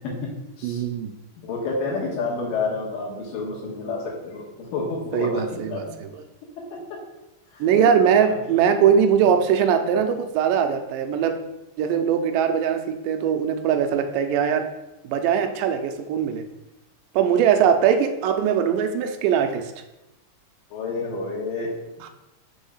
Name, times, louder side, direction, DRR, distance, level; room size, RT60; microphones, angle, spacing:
voice 1, 0.6-1.1 5.1-6.2 7.6-11.4 11.8-14.7 15.0-16.4 17.1-19.7 22.0-22.1, right 8 dB, 85° right, 7 dB, 2.2 m, -21 dB
voice 2, 1.4-6.0 6.7-6.8 7.5-7.8 8.2-8.4 20.7-21.7, left 3 dB, 80° left, -2 dB, 2.9 m, -29 dB
6.2 x 3.6 x 5.5 m, 0.95 s
omnidirectional pair, 3.9 m